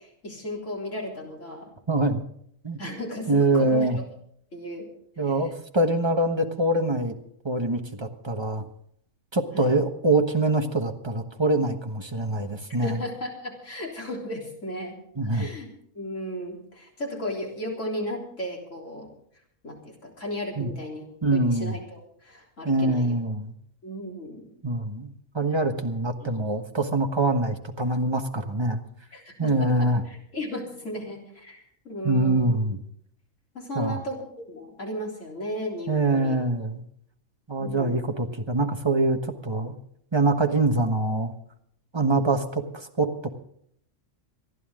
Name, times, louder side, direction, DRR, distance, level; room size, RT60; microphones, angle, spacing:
voice 1, 0.0-1.7 2.8-4.0 4.5-4.9 5.3-5.5 9.5-9.7 12.8-15.0 15.3-19.1 19.6-21.0 21.3-23.1 23.8-24.5 26.2-26.3 29.1-32.6 33.5-36.4 37.6-38.0, equal, 70° left, -1 dB, 4.1 m, -35 dB
voice 2, 1.9-2.2 2.6-2.8 3.3-4.0 5.2-7.1 7.4-8.6 9.3-13.0 15.2-15.5 20.6-20.7 21.2-21.8 22.6-23.5 24.6-28.8 29.4-30.0 32.0-32.8 33.7-34.0 35.9-36.8 37.5-39.7 40.1-41.3 41.9-43.3, right 2 dB, 20° right, 5 dB, 1.3 m, -24 dB
27.0 x 11.0 x 3.7 m, 0.69 s
omnidirectional pair, 1.4 m